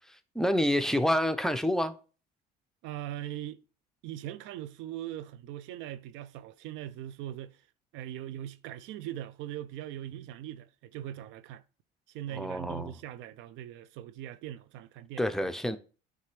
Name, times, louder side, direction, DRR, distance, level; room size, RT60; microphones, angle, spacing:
voice 1, 0.1-2.0 12.3-12.9 15.2-15.8, equal, ahead, 0.7 m, -28 dB
voice 2, 2.8-3.6 4.0-7.6 7.9-11.6 12.1-15.3, right 12 dB, 70° right, 0.4 m, -40 dB
9.4 x 3.4 x 3.3 m
hypercardioid pair, 65°, 20 cm